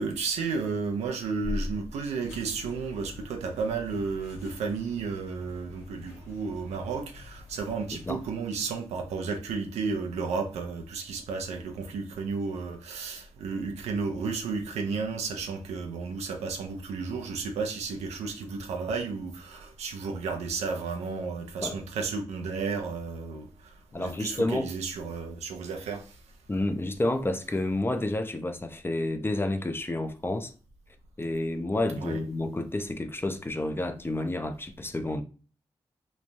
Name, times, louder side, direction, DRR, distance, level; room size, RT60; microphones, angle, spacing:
voice 1, 0.0-26.1 32.0-32.2, right 4 dB, 90° right, 0.4 m, -33 dB
sound 1, 2.2-8.4, left 3 dB, 90° left, 1.0 m, -48 dB
voice 2, 23.9-24.7 26.5-30.5 31.2-35.2, left 2 dB, 20° left, 0.5 m, -30 dB
3.1 x 2.1 x 2.6 m
supercardioid pair, 45°, 11 cm